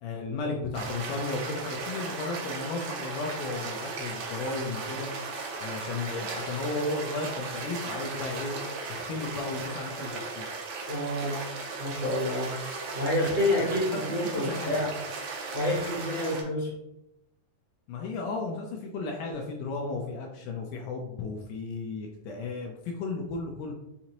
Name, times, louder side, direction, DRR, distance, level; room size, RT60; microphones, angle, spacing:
voice 1, 0.0-5.1 5.6-8.6 8.9-10.5 13.9-14.8 17.9-23.7, left 3 dB, 80° left, 1 dB, 2.0 m, -34 dB
sound 1, 0.7-16.4, right 4 dB, 75° right, 1.6 m, -36 dB
voice 2, 10.9-11.4 11.8-12.5 12.9-14.9 15.5-16.7, left 1 dB, 45° right, -10 dB, 0.9 m, -28 dB
5.9 x 2.8 x 2.9 m, 0.86 s
omnidirectional pair, 4.0 m